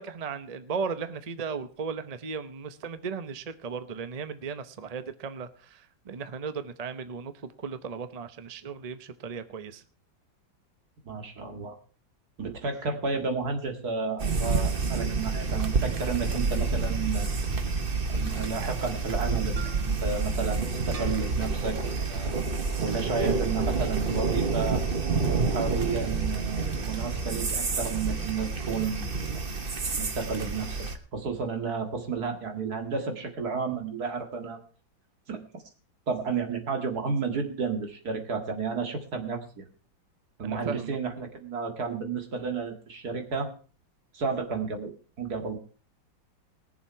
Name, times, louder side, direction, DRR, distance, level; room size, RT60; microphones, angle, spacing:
voice 1, 0.0-7.3 7.6-9.8 40.4-41.0, right 5 dB, 70° right, 11 dB, 0.3 m, -36 dB
voice 2, 11.1-11.8 12.4-17.3 18.1-22.4 22.8-24.8 25.5-29.1 30.0-34.6 35.3-35.4 36.1-39.6 40.4-43.5 44.1-44.9 45.2-45.6, right 5 dB, 50° right, 5 dB, 2.4 m, -32 dB
sound 1, 14.2-31.0, right 4 dB, 35° right, 1.1 m, -28 dB
20.0 x 7.2 x 4.6 m, 0.39 s
omnidirectional pair, 2.1 m